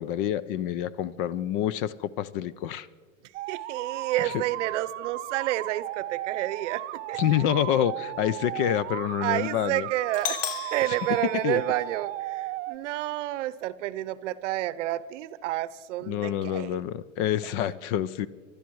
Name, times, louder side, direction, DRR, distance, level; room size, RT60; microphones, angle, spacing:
voice 1, 0.0-2.9 4.2-4.4 7.2-9.9 11.4-11.6 16.1-18.3, left 11 dB, 40° left, 20 dB, 0.6 m, -27 dB
sound 1, 3.3-12.8, right 16 dB, 25° right, 0.5 m, -36 dB
voice 2, 3.5-7.2 9.2-16.8, right 14 dB, 60° right, 18 dB, 0.8 m, -30 dB
Doorbell, 10.1-12.1, left 9 dB, 70° left, 1.0 m, -36 dB
24.5 x 12.0 x 4.7 m, 1.5 s
hypercardioid pair, 120°, 41 cm